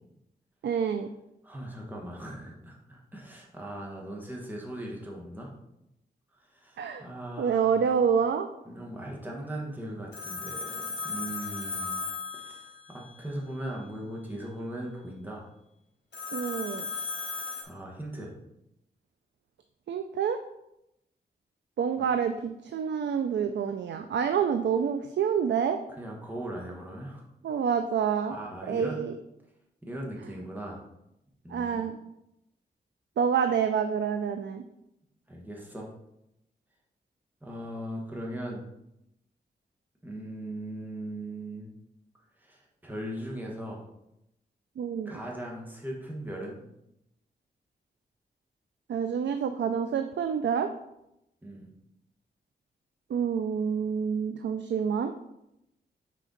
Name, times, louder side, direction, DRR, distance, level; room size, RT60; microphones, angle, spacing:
voice 1, 0.6-1.1 6.8-7.0 7.4-8.5 16.3-16.9 19.9-20.4 21.8-22.3 22.6-25.8 27.4-28.4 28.7-29.1 31.5-32.0 33.2-34.6 44.8-45.2 48.9-50.7 53.1-55.1, right 7 dB, 90° right, 8 dB, 0.4 m, -27 dB
voice 2, 1.4-5.5 6.5-7.8 8.6-12.0 12.3-15.5 17.6-18.3 26.0-27.2 28.3-29.0 29.8-30.8 31.4-31.9 35.3-35.9 37.4-38.7 40.0-41.7 42.4-43.8 45.0-46.6 51.4-51.7, right 1 dB, 10° right, -2 dB, 1.2 m, -39 dB
Telephone, 10.1-13.2 16.1-17.6, left 4 dB, 80° left, 1.2 m, -36 dB
6.4 x 4.3 x 3.9 m, 0.84 s
wide cardioid pair, 155°, 18 cm